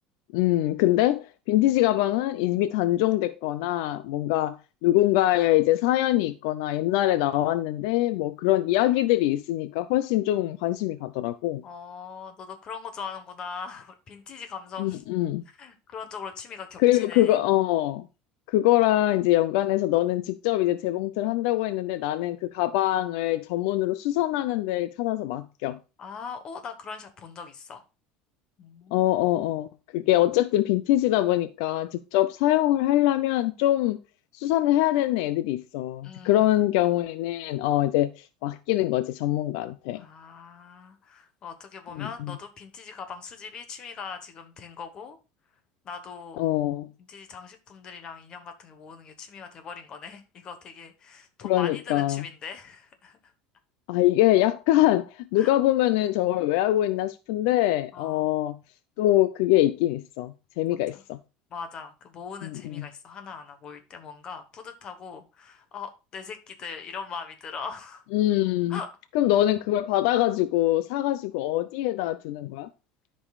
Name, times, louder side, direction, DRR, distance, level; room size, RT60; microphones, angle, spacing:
voice 1, 0.3-11.6 14.8-15.4 16.8-18.1 18.5-25.8 28.9-29.7 29.9-34.0 34.3-40.0 42.0-42.4 46.4-46.9 51.4-52.2 53.9-58.6 59.0-61.2 62.4-62.9 68.1-68.8 69.1-72.7, left 15 dB, 70° left, 0.5 m, -24 dB
voice 2, 11.6-15.0 15.6-17.4 26.0-27.8 28.6-29.0 36.0-36.5 39.9-45.2 45.8-46.5 47.0-53.2 55.4-55.5 57.9-58.3 60.7-61.0 61.5-68.0 68.7-68.9, left 6 dB, 30° left, 1.1 m, -40 dB
13.0 x 5.4 x 2.4 m
cardioid pair, 170°, 3 cm